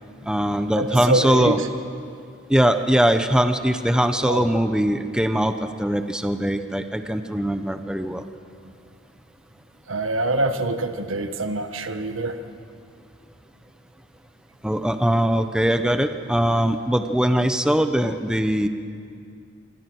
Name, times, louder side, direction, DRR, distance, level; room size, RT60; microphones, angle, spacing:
voice 1, 0.3-1.6 2.5-8.2 14.6-18.7, equal, 5° right, 8 dB, 0.8 m, -21 dB
voice 2, 0.8-1.7 4.2-4.5 9.9-12.4, right 2 dB, 75° right, 8 dB, 1.5 m, -25 dB
26.5 x 24.5 x 6.3 m, 2.4 s
head